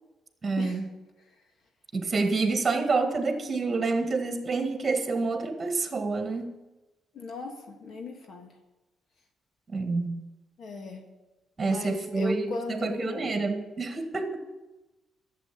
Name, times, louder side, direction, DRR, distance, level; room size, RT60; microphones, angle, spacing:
voice 1, 0.4-0.9 1.9-6.5 9.7-10.2 11.6-14.4, right 3 dB, 30° right, 6 dB, 1.8 m, -28 dB
voice 2, 7.1-7.5 7.8-8.5 10.6-11.0 11.6-13.3, left 3 dB, 60° left, 3 dB, 1.8 m, -36 dB
11.5 x 7.7 x 8.5 m, 1.1 s
cardioid pair, 90°, 0 cm